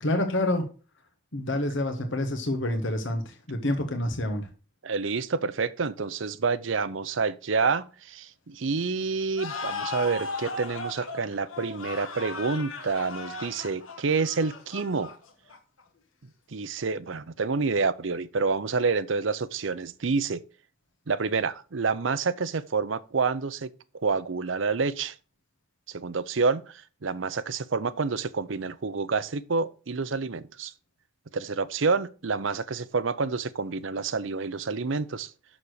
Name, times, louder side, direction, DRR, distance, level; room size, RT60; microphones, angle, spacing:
voice 1, 0.0-0.6 1.3-4.5, left 1 dB, 65° left, 1.5 m, -28 dB
voice 2, 4.8-15.1 16.5-20.4 21.1-23.7 23.9-25.1 25.9-30.7 31.3-35.3, right 4 dB, 70° right, 0.7 m, -28 dB
sound 1, 9.4-15.8, left 3 dB, 85° left, 1.9 m, -37 dB
7.1 x 6.6 x 6.5 m
head